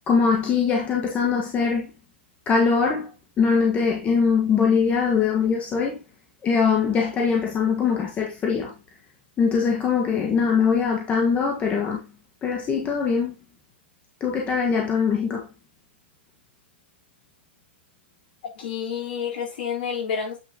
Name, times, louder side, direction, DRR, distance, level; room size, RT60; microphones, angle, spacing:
voice 1, 0.1-1.9 2.5-3.1 3.4-6.0 6.4-8.7 9.4-12.1 12.4-13.3 14.2-15.5, left 5 dB, 20° left, 1.5 m, -22 dB
voice 2, 18.5-20.4, left 7 dB, 60° left, 4.0 m, -29 dB
8.7 x 5.5 x 2.9 m
hypercardioid pair, 125°, 6 cm